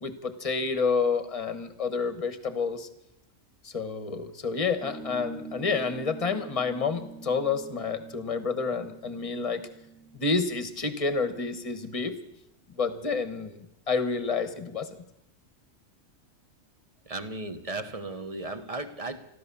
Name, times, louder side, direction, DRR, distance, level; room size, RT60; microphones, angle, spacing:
voice 1, 0.0-2.9 3.6-9.6 10.1-12.1 12.8-14.9, left 4 dB, 30° left, 10 dB, 1.3 m, -29 dB
sound 1, 4.8-11.8, right 4 dB, ahead, 0.9 m, -45 dB
voice 2, 17.0-19.2, right 2 dB, 30° right, 9 dB, 1.1 m, -35 dB
13.5 x 13.5 x 6.9 m, 0.83 s
omnidirectional pair, 1.3 m